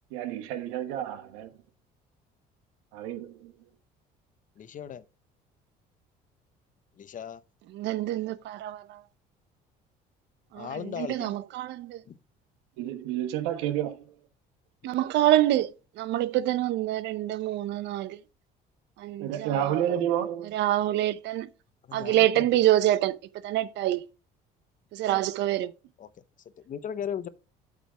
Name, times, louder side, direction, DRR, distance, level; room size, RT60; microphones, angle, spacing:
voice 1, 0.1-1.5 2.9-3.5 12.8-14.0 19.2-20.5, right 11 dB, 85° right, 1.2 m, -30 dB
voice 2, 4.6-5.0 7.0-7.4 10.5-11.4 12.1-12.2 21.9-22.5 25.1-25.2 26.0-26.1 26.7-27.3, left 8 dB, 45° left, 0.8 m, -37 dB
voice 3, 7.7-9.0 10.5-12.0 14.8-18.2 19.0-20.0 20.4-21.5 21.9-23.2 23.4-24.1 24.9-25.7, right 14 dB, 70° right, 0.7 m, -26 dB
8.3 x 3.7 x 6.0 m
supercardioid pair, 85°, 19 cm